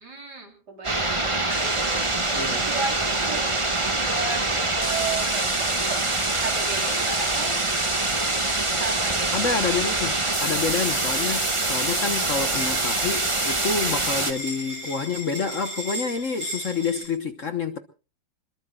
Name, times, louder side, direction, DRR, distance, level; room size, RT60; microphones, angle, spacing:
voice 1, 0.0-2.1 2.7-3.6 3.9-6.1 6.4-7.6 8.7-9.3, right 4 dB, 60° right, 4.3 m, -34 dB
sound 1, 0.8-14.3, right 2 dB, 15° right, 1.4 m, -24 dB
voice 2, 2.3-2.7 9.3-17.8, left 5 dB, 45° left, 1.3 m, -28 dB
sound 2, 12.5-17.0, equal, 85° right, 8.2 m, -36 dB
27.0 x 21.5 x 2.4 m
omnidirectional pair, 2.0 m